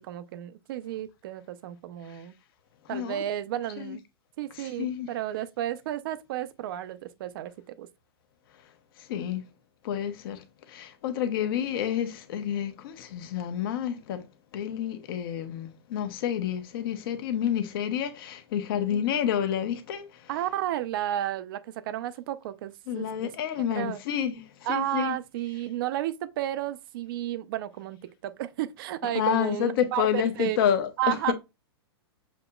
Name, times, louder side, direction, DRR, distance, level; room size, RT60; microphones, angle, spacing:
voice 1, 0.0-2.3 2.9-4.0 4.4-7.9 18.9-19.1 20.3-23.3 23.7-24.0 24.6-30.6 31.0-31.3, right 12 dB, 55° right, 0.6 m, -32 dB
voice 2, 2.9-3.2 3.8-4.0 4.6-5.1 9.1-9.4 9.8-10.4 10.7-14.2 14.5-20.0 22.9-24.4 24.7-25.2 29.1-31.3, left 9 dB, 55° left, 1.0 m, -29 dB
7.1 x 2.9 x 2.3 m
hypercardioid pair, 125°, 14 cm